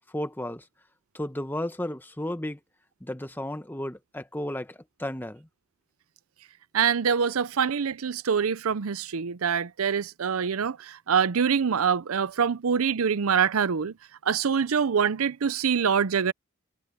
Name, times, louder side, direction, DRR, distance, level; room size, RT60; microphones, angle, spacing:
voice 1, 0.1-0.7 1.1-2.6 3.0-5.5, left 1 dB, 10° left, 1.0 m, -33 dB
voice 2, 6.7-13.9 14.3-16.3, right 6 dB, 90° right, 0.6 m, -25 dB
head